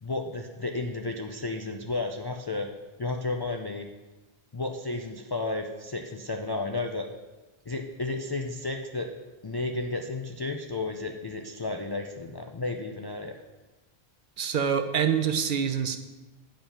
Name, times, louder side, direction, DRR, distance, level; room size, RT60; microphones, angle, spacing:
voice 1, 0.0-2.7 3.0-3.9 4.5-7.1 7.7-9.1 9.4-13.3, left 2 dB, 35° left, 4 dB, 0.4 m, -32 dB
voice 2, 14.4-16.0, right 7 dB, 55° right, 8 dB, 0.8 m, -26 dB
8.9 x 5.6 x 5.6 m, 1.2 s
omnidirectional pair, 1.1 m